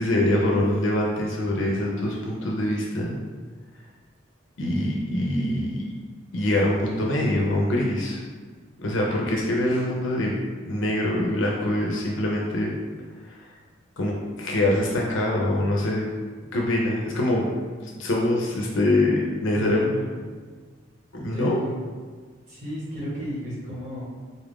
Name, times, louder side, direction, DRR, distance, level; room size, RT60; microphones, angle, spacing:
voice 1, 0.0-3.2 4.6-5.9 6.3-8.2 8.8-10.4 10.6-12.8 13.2-13.4 14.0-16.1 16.5-17.5 17.8-19.9 21.1-21.6, left 1 dB, 65° left, -2 dB, 0.5 m, -24 dB
voice 2, 19.5-20.2 21.3-21.7 22.5-24.0, equal, 35° right, -8 dB, 1.3 m, -33 dB
4.0 x 2.4 x 3.4 m, 1.5 s
head